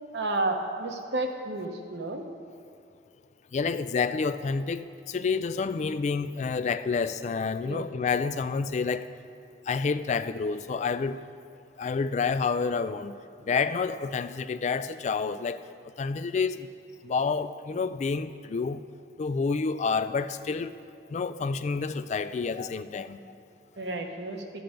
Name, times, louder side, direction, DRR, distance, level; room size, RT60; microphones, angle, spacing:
voice 1, 0.1-2.3 7.6-7.8 23.8-24.4, right 2 dB, 80° right, 3 dB, 1.1 m, -31 dB
voice 2, 3.5-9.1 9.7-11.2 11.8-13.1 13.5-15.6 16.0-16.7 17.0-18.8 19.2-20.7 21.1-23.2 24.0-24.1, left 5 dB, 40° left, 12 dB, 0.3 m, -29 dB
13.0 x 7.7 x 5.1 m, 2.3 s
head